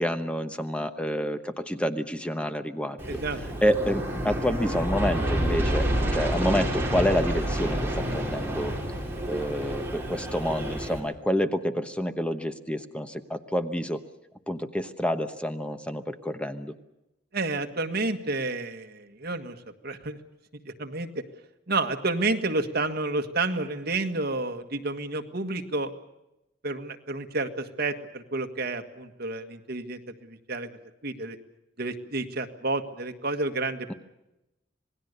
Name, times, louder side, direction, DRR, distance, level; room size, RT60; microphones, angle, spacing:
voice 1, 0.0-3.2 3.6-8.8 9.3-14.0 14.5-16.7, equal, 5° left, 9 dB, 1.0 m, -28 dB
Aircraft, 3.0-11.0, right 1 dB, 15° right, 5.7 m, -29 dB
voice 2, 3.1-3.4 17.3-19.6 19.8-20.2 20.7-21.2 21.7-25.9 26.6-30.7 31.0-31.4 31.8-33.9, right 2 dB, 55° right, 6 dB, 1.8 m, -30 dB
27.0 x 19.5 x 6.7 m, 0.93 s
head